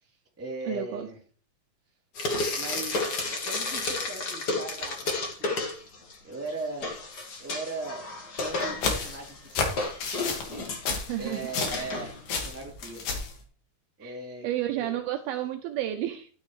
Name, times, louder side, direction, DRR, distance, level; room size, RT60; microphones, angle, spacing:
voice 1, 0.0-1.2 2.5-5.6 6.2-7.0 7.4-9.8 10.2-13.1 14.0-14.5 14.8-15.0, right 2 dB, 5° right, -2 dB, 2.1 m, -39 dB
voice 2, 0.7-1.1 10.9-11.5 14.0-14.2 14.4-16.3, right 12 dB, 80° right, 7 dB, 2.3 m, -31 dB
Frying (food), 2.1-6.2 6.5-12.5, left 3 dB, 80° left, 0.9 m, -32 dB
sound 1, 8.4-12.0 12.3-13.3, left 4 dB, 60° left, 3.3 m, -31 dB
12.0 x 9.2 x 3.2 m, 0.43 s
omnidirectional pair, 4.6 m